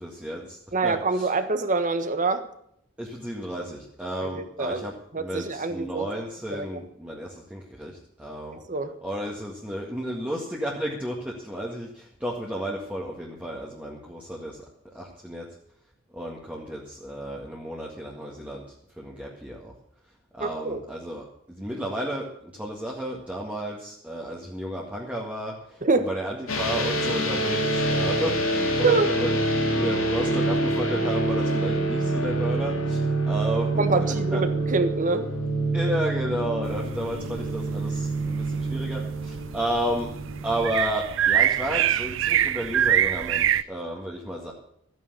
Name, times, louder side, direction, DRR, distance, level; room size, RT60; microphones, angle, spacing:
voice 1, 0.0-1.3 3.0-8.6 9.0-15.5 16.1-19.7 20.3-29.4 29.7-34.4 35.7-40.1 40.4-44.5, equal, 5° right, -3 dB, 1.7 m, -33 dB
voice 2, 0.7-2.5 4.3-4.9 5.1-6.1 6.5-6.8 8.7-8.9 20.4-20.8 25.8-26.1 28.8-29.1 33.8-35.3, right 3 dB, 40° right, 9 dB, 1.4 m, -25 dB
sound 1, 26.5-40.7, right 1 dB, 85° left, 3.4 m, -26 dB
sound 2, 36.7-43.6, right 10 dB, 65° right, 0.5 m, -26 dB
14.0 x 9.5 x 6.7 m, 0.71 s
head